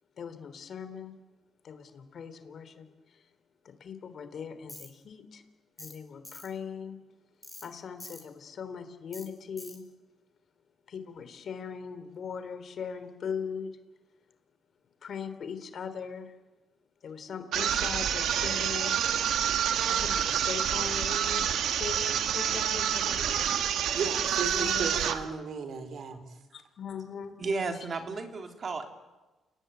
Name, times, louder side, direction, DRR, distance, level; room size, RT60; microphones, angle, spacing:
voice 1, 0.2-1.2 1.6-3.2 3.8-5.4 5.8-7.0 7.6-9.8 10.9-13.7 15.0-16.4 17.0-19.0 19.7-23.6 24.5-25.0 26.5-27.4, left 6 dB, 55° left, 11 dB, 3.3 m, -40 dB
Tools, 4.7-4.9 5.8-6.0 6.2-6.5 7.4-7.7 8.0-8.2 9.1-9.3 9.6-9.8, left 1 dB, 10° left, 6.3 m, -45 dB
sound 1, 17.5-25.3, right 9 dB, 80° right, 1.9 m, -28 dB
voice 2, 24.0-26.4, right 5 dB, 60° right, 9 dB, 4.0 m, -35 dB
voice 3, 27.4-28.9, right 3 dB, 45° right, 5 dB, 3.5 m, -33 dB
29.5 x 19.0 x 9.2 m, 1.2 s
cardioid pair, 90°, 0 cm